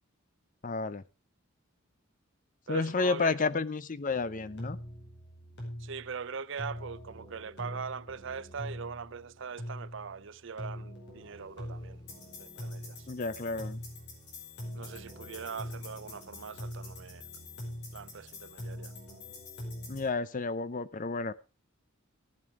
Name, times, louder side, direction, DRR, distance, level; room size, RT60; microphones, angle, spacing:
voice 1, 0.6-1.0 2.7-4.8 13.1-13.8 19.9-21.3, left 4 dB, 40° left, 0.6 m, -31 dB
voice 2, 2.7-3.4 5.8-12.0 12.4-13.1 14.7-17.2 17.9-18.9, right 6 dB, 60° right, 0.6 m, -41 dB
sound 1, 4.1-20.1, left 1 dB, 55° left, 5.1 m, -43 dB
sound 2, 11.2-18.5, left 1 dB, 20° left, 4.3 m, -60 dB
14.5 x 9.0 x 4.8 m
head